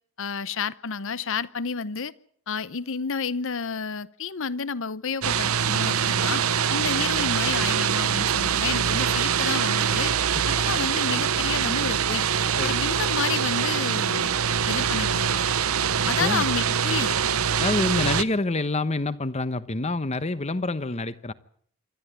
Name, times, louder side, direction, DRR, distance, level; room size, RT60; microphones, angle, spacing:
voice 1, 0.2-2.1 2.5-6.4 6.7-10.1 10.5-12.2 12.6-14.3 14.7-15.5 16.0-17.1, left 5 dB, 60° left, 0.8 m, -30 dB
sound 1, 5.2-18.2, right 7 dB, 75° right, 0.8 m, -24 dB
voice 2, 17.6-21.3, left 2 dB, 30° left, 1.0 m, -27 dB
27.0 x 12.5 x 9.3 m
head